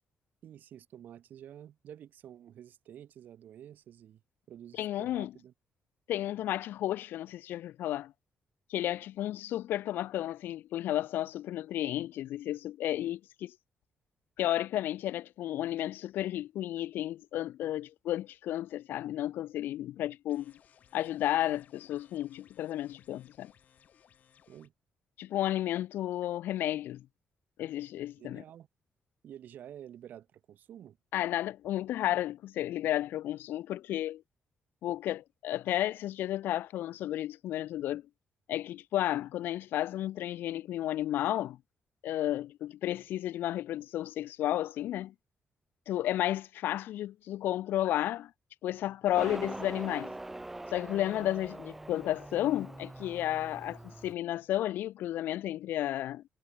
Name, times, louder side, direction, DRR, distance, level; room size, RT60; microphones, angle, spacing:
voice 1, 0.4-4.2 4.5-5.5 24.5-24.7 28.2-28.7 29.2-31.0, right 10 dB, 60° right, 3.7 m, -50 dB
voice 2, 4.8-5.3 6.1-8.1 8.7-13.5 14.4-20.5 20.9-23.5 25.2-27.1 27.6-28.4 31.1-34.2 34.8-38.0 38.5-41.6 42.0-45.1 45.9-48.3 48.6-50.1 50.7-56.2, left 13 dB, 85° left, 0.3 m, -32 dB
sound 1, 20.3-24.7, left 8 dB, 50° left, 2.9 m, -63 dB
Motorcycle, 49.1-54.1, right 2 dB, 10° right, 1.2 m, -43 dB
cardioid pair, 165°, 3 cm